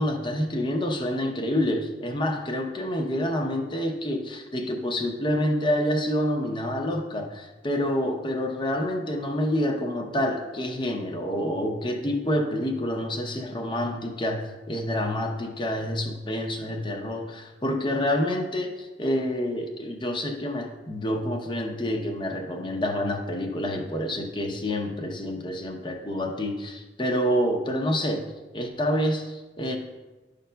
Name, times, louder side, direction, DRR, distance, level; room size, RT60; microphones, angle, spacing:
voice 1, 0.0-28.3 28.5-29.8, equal, 25° left, 4 dB, 0.7 m, -28 dB
11.5 x 5.2 x 2.2 m, 1.2 s
head